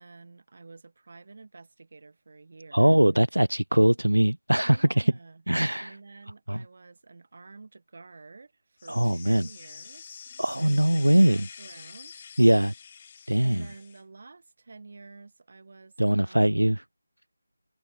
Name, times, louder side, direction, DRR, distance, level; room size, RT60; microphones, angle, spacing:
voice 1, 0.0-3.0 4.6-5.4 5.8-12.3 13.4-16.7, right 3 dB, 50° right, 3.6 m, -49 dB
voice 2, 2.7-5.1 5.5-6.0 6.5-6.6 8.9-9.5 10.4-11.5 12.4-12.7 13.3-13.6 16.0-16.8, right 1 dB, 85° right, 0.4 m, -21 dB
sound 1, 8.8-14.0, left 6 dB, 30° left, 1.5 m, -47 dB
figure-of-eight pair, 160°, 0 cm